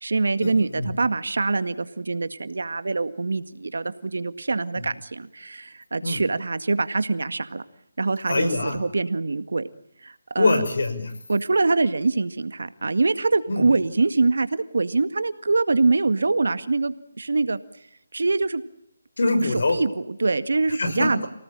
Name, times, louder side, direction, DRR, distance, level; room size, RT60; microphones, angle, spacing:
voice 1, 0.0-7.6 8.0-9.7 10.0-10.6 11.3-17.6 18.1-18.6 19.7-21.3, right 3 dB, 75° right, 12 dB, 1.9 m, -24 dB
voice 2, 8.3-8.8 10.4-11.1 13.5-13.6 19.2-19.8 20.7-21.1, left 2 dB, 70° left, 9 dB, 6.3 m, -23 dB
29.0 x 18.5 x 8.9 m, 0.79 s
figure-of-eight pair, 160°, 0 cm